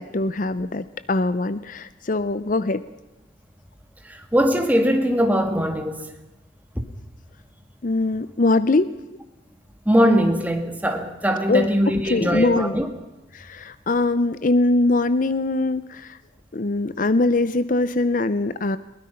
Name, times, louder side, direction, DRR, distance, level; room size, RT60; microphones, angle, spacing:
voice 1, 0.0-2.8 7.8-8.9 11.5-12.8 13.3-16.2 16.5-18.8, left 2 dB, 45° left, 0.6 m, -22 dB
voice 2, 4.1-6.1 9.9-12.9, equal, 10° right, 1.9 m, -21 dB
22.0 x 20.5 x 5.7 m
head